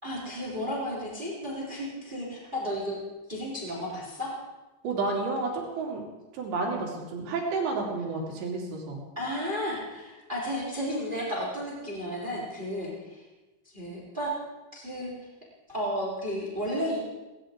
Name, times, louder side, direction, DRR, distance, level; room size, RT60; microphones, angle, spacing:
voice 1, 0.0-3.0 3.3-4.3 9.2-13.2 13.7-14.3 14.7-15.1 15.7-17.0, equal, 10° right, -4 dB, 3.6 m, -33 dB
voice 2, 4.8-6.0 6.3-9.0, right 3 dB, 70° right, -1 dB, 5.0 m, -30 dB
19.5 x 18.0 x 3.8 m, 1.1 s
omnidirectional pair, 5.4 m